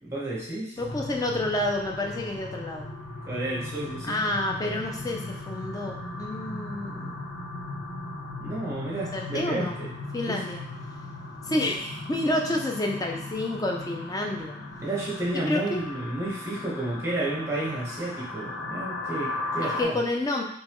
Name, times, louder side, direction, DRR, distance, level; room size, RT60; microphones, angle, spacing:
voice 1, 0.0-0.8 3.3-4.3 8.4-9.9 10.3-10.4 14.8-20.0, right 2 dB, 15° right, -5 dB, 1.0 m, -31 dB
sound 1, 0.8-19.8, left 2 dB, 65° left, 0.9 m, -37 dB
voice 2, 0.8-2.9 4.1-7.2 9.1-9.8 10.1-10.6 11.4-14.6 15.5-15.8 19.6-20.4, left 1 dB, 20° left, 1 dB, 0.4 m, -29 dB
4.1 x 3.1 x 3.0 m, 0.70 s
head